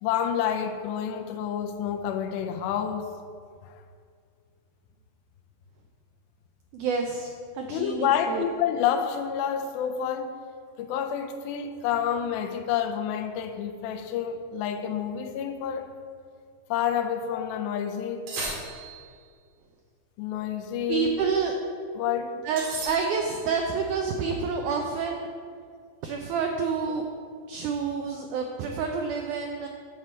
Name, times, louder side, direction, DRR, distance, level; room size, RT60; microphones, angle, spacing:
voice 1, 0.0-3.1 3.6-3.7 7.7-10.3 10.8-15.9 16.7-18.3 20.2-21.2 22.0-22.4, left 8 dB, 85° left, 6 dB, 2.4 m, -28 dB
voice 2, 6.7-8.4 20.9-21.5 22.4-25.3 26.0-27.1 27.5-29.7, right 5 dB, 85° right, 2 dB, 1.7 m, -28 dB
sound 1, 18.3-19.2 22.6-23.5, right 2 dB, 65° right, 3.5 m, -36 dB
9.4 x 7.1 x 4.3 m, 2.1 s
omnidirectional pair, 4.3 m